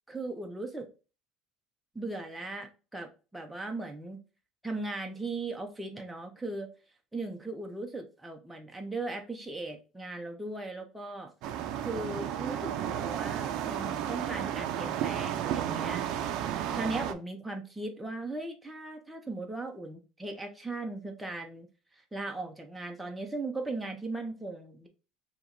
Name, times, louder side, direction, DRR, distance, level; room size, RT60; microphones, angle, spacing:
voice 1, 0.1-0.9 1.9-4.2 4.6-6.7 7.1-11.3 11.8-16.1 16.7-21.7 22.1-24.9, right 2 dB, 5° right, 0.5 m, -38 dB
sound 1, 11.4-17.1, right 10 dB, 50° right, 0.4 m, -33 dB
4.6 x 2.8 x 2.6 m
cardioid pair, 175°, 0 cm